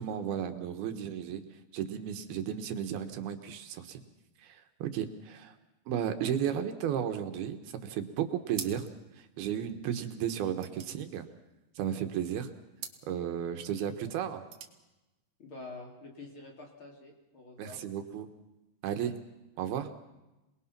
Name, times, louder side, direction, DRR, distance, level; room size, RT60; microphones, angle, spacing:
voice 1, 0.0-4.0 4.4-5.5 5.9-8.9 9.2-11.3 11.8-12.5 13.0-14.4 17.6-18.3 18.8-19.1 19.6-19.9, right 9 dB, 75° right, 7 dB, 3.0 m, -34 dB
sound 1, 8.5-9.1 9.4-9.5 9.7-11.9 12.7-13.1 14.2-14.8, right 8 dB, 55° right, 2.5 m, -45 dB
voice 2, 15.4-17.8, left 2 dB, 35° left, 0 dB, 3.4 m, -47 dB
28.0 x 20.5 x 5.9 m, 1.0 s
omnidirectional pair, 4.6 m